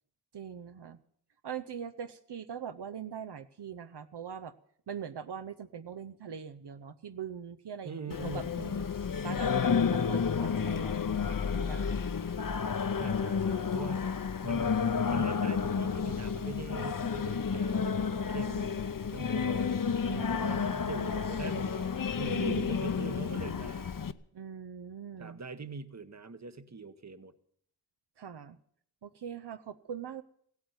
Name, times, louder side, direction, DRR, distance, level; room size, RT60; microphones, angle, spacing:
voice 1, 0.3-1.0 1.4-4.5 4.9-8.8 9.2-12.0 20.1-20.9 22.3-23.0 24.3-25.4 28.2-28.6 29.0-30.2, right 8 dB, 75° right, 8 dB, 0.7 m, -42 dB
voice 2, 7.8-8.7 12.9-14.2 14.4-14.8 15.0-20.0 20.3-24.0 25.2-27.3, right 4 dB, 40° right, 12 dB, 1.0 m, -42 dB
Singing, 8.1-24.1, left 6 dB, 55° left, 0.7 m, -31 dB
16.0 x 8.5 x 9.4 m, 0.64 s
wide cardioid pair, 55°, 41 cm